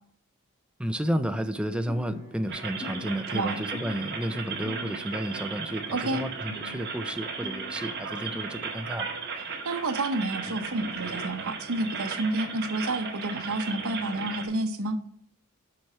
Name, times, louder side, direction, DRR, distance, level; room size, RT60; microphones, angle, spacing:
voice 1, 0.8-9.1, equal, 5° right, 8 dB, 0.4 m, -32 dB
sound 1, 1.9-9.3, equal, 50° left, 2.5 m, -45 dB
sound 2, 2.5-14.5, right 5 dB, 50° right, 1.6 m, -36 dB
voice 2, 3.3-3.6 5.9-6.2 9.6-15.0, right 2 dB, 75° right, 8 dB, 0.9 m, -29 dB
6.2 x 6.0 x 4.3 m, 0.66 s
head